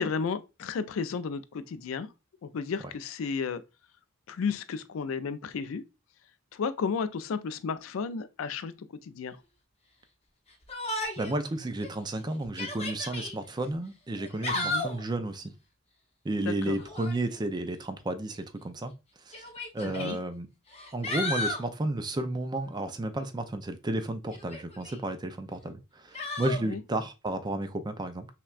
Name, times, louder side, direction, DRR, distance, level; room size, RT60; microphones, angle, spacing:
voice 1, 0.0-2.1 2.4-3.6 4.3-5.8 6.5-8.7 9.0-9.4 14.5-14.8 16.4-16.8 19.8-20.2 26.6-26.8, left 5 dB, 70° left, 0.4 m, -33 dB
Yell, 10.7-11.4 11.8-11.9 12.4-13.3 14.2-15.0 16.8-17.2 18.4-18.5 19.3-20.1 20.7-21.7 24.3-25.0 26.1-26.6, left 2 dB, 30° left, 0.8 m, -34 dB
voice 2, 11.2-15.5 16.2-18.9 19.3-19.4 19.7-20.5 20.9-28.3, right 2 dB, 20° right, 0.4 m, -32 dB
5.7 x 2.2 x 2.3 m
head